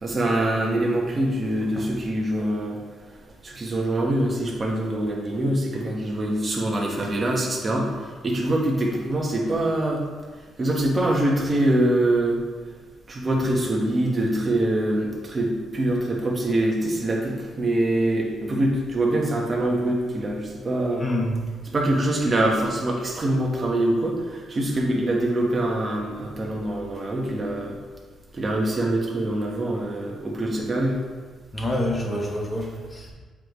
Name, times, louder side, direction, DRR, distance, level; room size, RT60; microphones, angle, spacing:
voice 1, 0.0-2.8 3.4-10.0 10.6-12.4 13.1-21.1 21.7-27.8 28.3-31.0, right 1 dB, 30° right, -1 dB, 1.5 m, -24 dB
voice 2, 21.0-21.4 31.5-33.1, left 1 dB, 25° left, 0 dB, 1.2 m, -27 dB
7.5 x 4.9 x 3.2 m, 1.4 s
cardioid pair, 90°, 0 cm